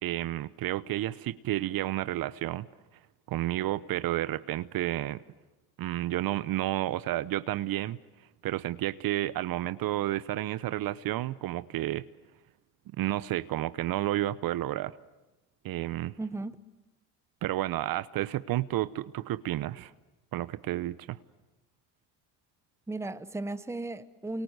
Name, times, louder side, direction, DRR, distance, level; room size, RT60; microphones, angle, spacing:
voice 1, 0.0-2.7 3.3-5.2 5.8-8.0 8.4-12.0 13.0-15.0 15.6-16.2 17.4-19.9 20.3-21.2, right 14 dB, 50° right, 0.9 m, -31 dB
voice 2, 16.2-16.6 22.9-24.4, right 2 dB, 5° right, 1.0 m, -35 dB
28.5 x 24.0 x 8.0 m
hypercardioid pair, 80°, 45 cm